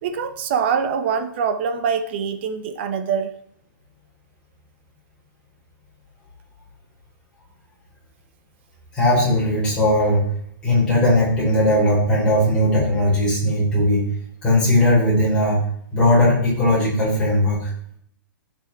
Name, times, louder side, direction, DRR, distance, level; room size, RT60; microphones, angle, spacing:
voice 1, 0.0-3.3, right 6 dB, 35° right, 10 dB, 0.8 m, -24 dB
voice 2, 8.9-10.3 10.6-14.1 14.4-15.6 15.9-17.6, left 1 dB, 10° left, -7 dB, 4.8 m, -18 dB
15.0 x 6.3 x 4.5 m, 0.66 s
hypercardioid pair, 175°, 11 cm